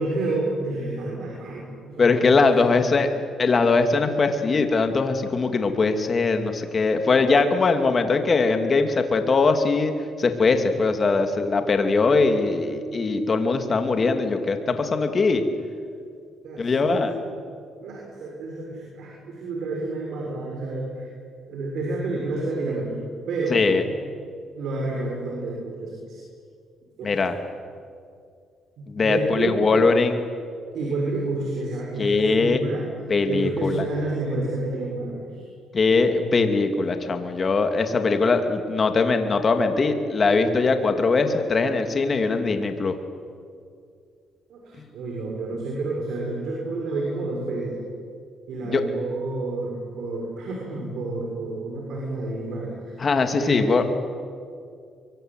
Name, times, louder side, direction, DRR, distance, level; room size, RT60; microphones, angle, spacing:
voice 1, 0.0-2.5 10.7-10.8 16.4-17.1 17.8-21.1 21.5-22.9 23.3-23.6 23.8-24.0 24.5-26.2 27.0-27.1 28.8-29.5 30.7-32.8 33.3-35.5 35.9-36.4 44.5-47.8 48.5-53.0 53.4-53.8, right 2 dB, 75° right, -2 dB, 6.8 m, -30 dB
voice 2, 2.0-3.1 3.4-9.9 10.2-15.4 16.6-17.1 23.5-23.8 27.0-27.3 28.9-30.2 32.0-32.6 33.1-33.8 35.7-42.9 48.6-48.8 53.0-53.8, left 4 dB, 40° left, 6 dB, 2.8 m, -21 dB
24.5 x 23.5 x 9.2 m, 2.3 s
cardioid pair, 90°, 0 cm